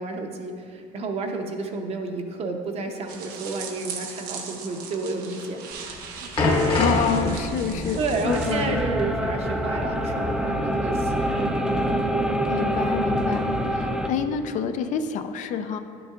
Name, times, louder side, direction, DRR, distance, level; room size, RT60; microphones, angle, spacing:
voice 1, 0.0-6.9 8.0-11.7 13.8-14.0, right 3 dB, 45° right, 4 dB, 0.7 m, -31 dB
sound 1, 3.1-8.5, right 6 dB, 90° right, 0.9 m, -39 dB
sound 2, 5.8-10.7 10.9-11.1 11.8-11.9, left 2 dB, 35° left, 0.9 m, -27 dB
voice 2, 6.8-8.8 12.5-15.8, left 7 dB, 55° left, 8 dB, 0.4 m, -28 dB
sound 3, 8.3-14.1, equal, 5° right, 0.5 m, -25 dB
11.0 x 6.9 x 2.4 m, 2.4 s
cardioid pair, 135°, 15 cm